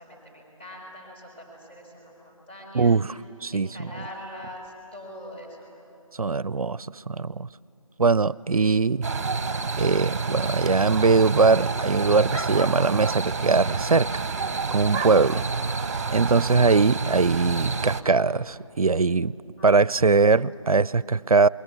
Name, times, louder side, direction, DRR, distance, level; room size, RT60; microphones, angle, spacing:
voice 1, 0.0-3.0 3.5-5.7 15.2-15.4 19.6-20.2 20.5-20.7, equal, 20° left, -1 dB, 5.9 m, -43 dB
voice 2, 2.7-3.9 6.2-7.5 8.0-9.1 9.8-14.1 14.7-15.4 16.1-19.3 19.6-21.5, right 4 dB, 80° right, 21 dB, 0.5 m, -21 dB
sound 1, 9.0-18.0, right 4 dB, 25° right, 1.0 m, -28 dB
27.5 x 22.0 x 8.2 m, 2.8 s
figure-of-eight pair, 160°, 18 cm